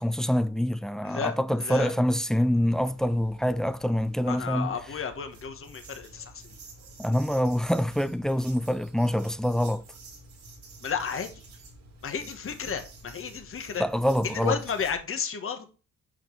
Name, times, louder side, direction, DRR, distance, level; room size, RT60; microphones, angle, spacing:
voice 1, 0.0-4.7 7.0-9.8 13.8-14.6, equal, ahead, 0.5 m, -25 dB
voice 2, 1.0-1.9 4.3-6.6 10.8-11.4 12.0-13.9 14.2-15.7, left 6 dB, 45° left, 1.5 m, -33 dB
sound 1, 2.7-15.0, right 2 dB, 65° right, 3.2 m, -49 dB
7.7 x 5.4 x 4.6 m
cardioid pair, 90°, 30 cm